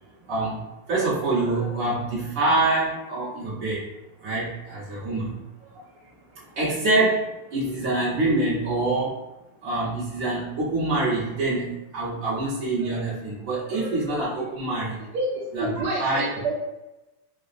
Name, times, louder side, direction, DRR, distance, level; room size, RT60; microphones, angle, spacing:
voice 1, 0.3-3.9 4.2-5.4 5.7-5.8 6.3-9.2 9.6-15.0 15.5-15.7 16.0-16.3, right 2 dB, 45° right, -8 dB, 1.5 m, -25 dB
voice 2, 15.1-16.5, right 2 dB, 65° right, -7 dB, 1.0 m, -28 dB
3.9 x 2.2 x 2.5 m, 1.0 s
omnidirectional pair, 2.3 m